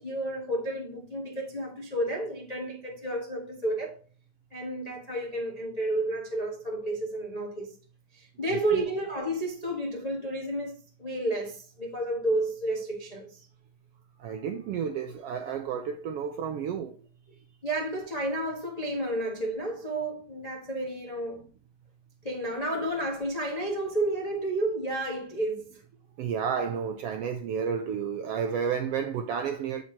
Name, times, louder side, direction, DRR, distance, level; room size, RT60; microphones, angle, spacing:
voice 1, 0.0-4.0 4.5-7.7 8.1-13.4 17.6-21.5 22.2-25.8, right 1 dB, 40° left, 0.5 m, -31 dB
voice 2, 8.5-8.8 14.2-17.0 26.2-29.8, right 7 dB, 80° right, 1.4 m, -31 dB
8.7 x 6.1 x 2.7 m
omnidirectional pair, 3.3 m